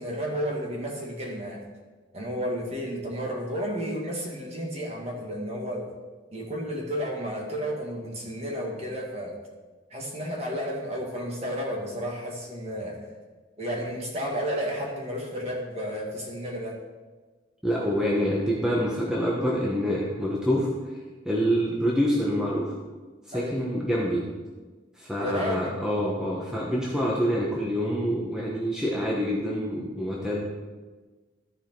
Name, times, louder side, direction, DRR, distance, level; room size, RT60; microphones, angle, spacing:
voice 1, 0.0-1.6 2.1-5.9 6.3-9.3 9.9-13.0 13.6-16.8 23.3-23.6 25.2-25.7, equal, 35° right, -1 dB, 1.8 m, -32 dB
voice 2, 17.6-20.7 21.2-22.7 23.3-24.2 25.0-30.5, equal, 5° right, -4 dB, 1.0 m, -26 dB
13.5 x 4.9 x 4.6 m, 1.3 s
head